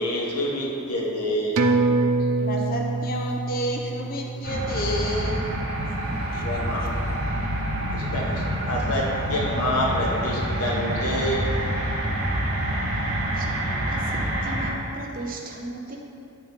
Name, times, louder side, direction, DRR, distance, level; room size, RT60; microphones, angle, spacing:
voice 1, 0.0-1.6 6.4-6.8 7.9-11.5, left 1 dB, 90° left, -3 dB, 1.2 m, -27 dB
sound 1, 1.6-6.5 6.9-7.0, right 3 dB, 80° right, 0.5 m, -26 dB
voice 2, 2.4-5.5 6.2-7.1, equal, 40° left, 0 dB, 0.7 m, -31 dB
sound 2, 4.4-14.7, right 1 dB, 60° right, 1.4 m, -27 dB
voice 3, 13.3-16.0, right 2 dB, 40° right, 0 dB, 0.7 m, -37 dB
9.1 x 3.7 x 4.0 m, 2.6 s
head